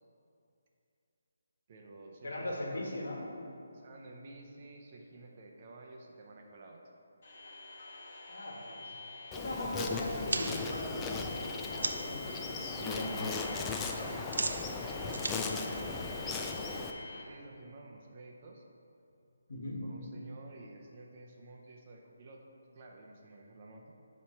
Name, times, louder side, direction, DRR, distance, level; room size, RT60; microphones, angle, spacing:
voice 1, 1.7-2.8 3.7-6.8 12.8-18.6 19.8-22.5 22.7-23.8, right 2 dB, 35° right, 0 dB, 0.6 m, -52 dB
voice 2, 2.2-3.3 8.3-8.9 9.3-13.1 19.5-19.8, left 1 dB, 65° left, -2 dB, 1.4 m, -39 dB
sound 1, 7.2-17.2, left 3 dB, 45° left, 1.4 m, -47 dB
Insect, 9.3-16.9, left 4 dB, 10° left, 0.3 m, -38 dB
sound 2, 10.3-12.2 12.6-13.0 13.3-16.6, right 3 dB, 80° right, 0.5 m, -38 dB
7.2 x 3.1 x 5.6 m, 2.6 s
hypercardioid pair, 165°, 0 cm